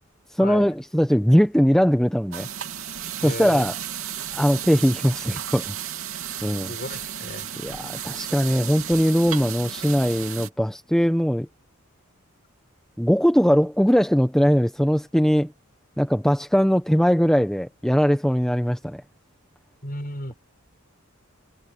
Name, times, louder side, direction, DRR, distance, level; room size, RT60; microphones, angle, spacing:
voice 1, 0.3-2.5 3.2-3.7 4.3-5.7 6.4-6.7 7.6-11.5 13.0-15.5 16.0-19.0, equal, 5° left, 1.0 m, -20 dB
sound 1, 2.3-10.5, right 9 dB, 70° right, 2.9 m, -34 dB
voice 2, 3.2-3.7 6.7-7.5 7.8-8.0 19.8-20.3, left 1 dB, 40° left, 7.1 m, -34 dB
head